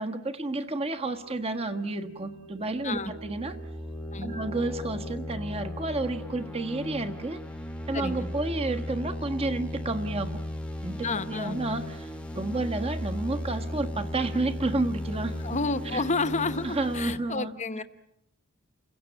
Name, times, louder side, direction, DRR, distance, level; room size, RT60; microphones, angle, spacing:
voice 1, 0.0-3.6 4.2-7.4 7.9-10.4 10.8-15.6 15.9-16.0 16.6-17.5, right 2 dB, 25° right, 6 dB, 1.5 m, -31 dB
sound 1, 1.2-6.3, right 3 dB, 60° right, 1.1 m, -50 dB
sound 2, 2.0-17.2, left 1 dB, 5° left, 1.2 m, -36 dB
voice 2, 7.9-8.3 11.0-11.6 15.4-17.8, left 3 dB, 35° left, 11 dB, 1.0 m, -30 dB
29.5 x 16.5 x 8.7 m, 0.83 s
head